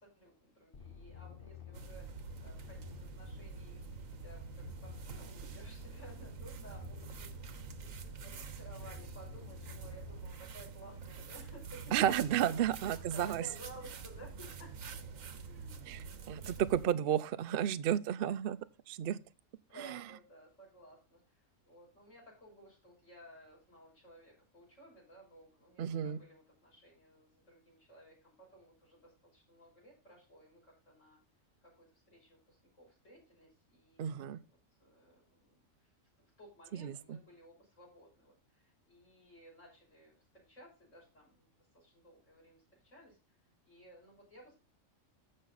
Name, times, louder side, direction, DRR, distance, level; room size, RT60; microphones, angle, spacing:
voice 1, 0.0-14.9 15.3-16.0 16.4-16.6 19.7-21.3 21.7-31.2 31.6-34.2 34.8-35.6 36.4-43.2 43.6-44.6, right 1 dB, 70° left, 6.2 m, -57 dB
sound 1, 0.7-10.3, left 4 dB, 45° left, 1.0 m, -51 dB
sound 2, 1.7-16.8, right 5 dB, 85° right, 1.4 m, -47 dB
voice 2, 11.9-13.5 15.9-18.6 18.9-19.2 19.8-20.0 25.8-26.2 34.0-34.4 36.7-37.2, right 10 dB, 60° right, 0.6 m, -32 dB
14.0 x 5.5 x 4.0 m
omnidirectional pair, 1.4 m